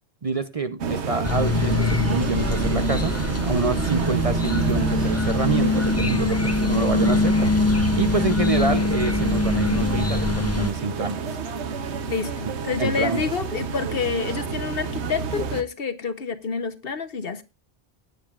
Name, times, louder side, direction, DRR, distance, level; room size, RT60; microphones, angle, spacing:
voice 1, 0.2-3.1 3.4-11.2 12.8-13.2, right 3 dB, 35° right, 0.7 m, -27 dB
sound 1, 0.8-15.6, right 6 dB, 85° right, 1.2 m, -29 dB
sound 2, 1.2-10.7, left 3 dB, 15° left, 0.6 m, -23 dB
voice 2, 12.1-17.4, left 5 dB, 60° left, 1.2 m, -28 dB
19.0 x 9.3 x 2.4 m
omnidirectional pair, 1.1 m